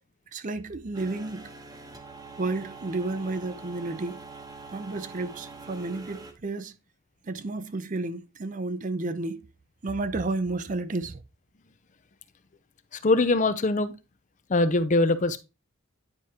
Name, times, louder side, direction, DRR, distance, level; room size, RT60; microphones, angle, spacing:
voice 1, 0.3-1.5 2.4-4.2 4.7-6.8 7.2-9.5 9.8-11.2, right 2 dB, 40° right, 0.5 m, -31 dB
sound 1, 0.9-6.3, right 3 dB, 20° right, 0.9 m, -44 dB
voice 2, 13.0-13.9 14.5-15.4, left 2 dB, 35° left, 0.5 m, -22 dB
9.6 x 4.8 x 2.8 m
head